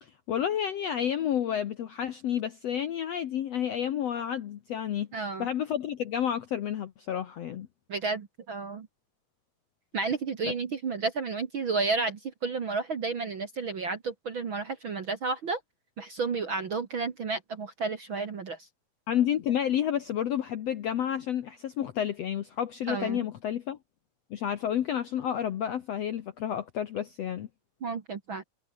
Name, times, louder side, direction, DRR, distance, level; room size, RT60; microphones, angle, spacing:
voice 1, 0.0-7.7 10.4-10.5 19.1-23.8 24.3-27.5, left 10 dB, 65° left, 1.6 m, -30 dB
voice 2, 5.1-5.5 7.9-8.9 9.9-15.6 16.0-18.7 22.9-23.3 27.8-28.4, right 4 dB, 50° right, 1.7 m, -32 dB
omnidirectional pair, 4.3 m